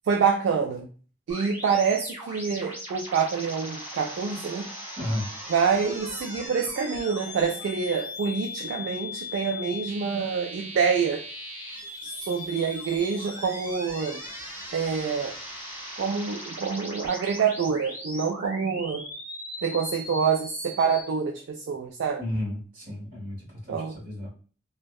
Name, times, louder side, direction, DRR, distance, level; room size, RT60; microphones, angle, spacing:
voice 1, 0.1-0.9 1.3-4.7 5.5-11.2 12.0-14.2 14.7-15.4 16.0-19.1 19.6-22.2 23.7-24.0, right 6 dB, 75° right, 2 dB, 0.3 m, -26 dB
sound 1, 1.3-21.0, left 1 dB, 10° right, 1.2 m, -39 dB
voice 2, 5.0-5.3 22.2-23.4 23.6-24.3, left 1 dB, 50° right, -4 dB, 1.4 m, -32 dB
2.6 x 2.1 x 2.3 m, 0.40 s
head